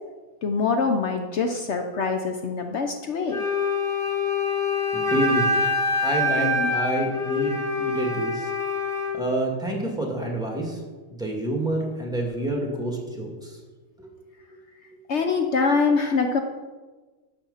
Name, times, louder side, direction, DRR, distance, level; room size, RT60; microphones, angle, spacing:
voice 1, 0.4-3.4 6.4-6.7 15.1-16.4, left 4 dB, 80° left, 4 dB, 0.6 m, -24 dB
Wind instrument woodwind instrument, 3.3-9.2, left 3 dB, 30° left, 1.5 m, -25 dB
voice 2, 4.9-5.5 6.0-8.5 9.1-10.8 11.2-13.6 14.0-14.1, right 1 dB, ahead, -1 dB, 2.2 m, -28 dB
12.0 x 7.6 x 5.7 m, 1.3 s
omnidirectional pair, 2.3 m